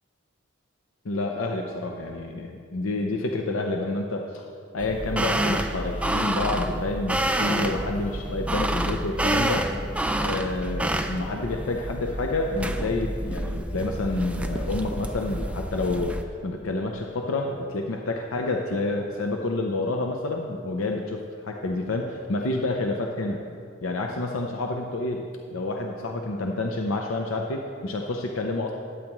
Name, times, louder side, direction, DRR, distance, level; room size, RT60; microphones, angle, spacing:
voice 1, 1.0-4.4 4.7-9.7 10.2-23.4 23.8-28.7, left 2 dB, 85° left, 2 dB, 0.6 m, -29 dB
sound 1, 4.8-16.2, right 1 dB, 5° right, 0.3 m, -28 dB
12.0 x 9.2 x 3.0 m, 2.3 s
head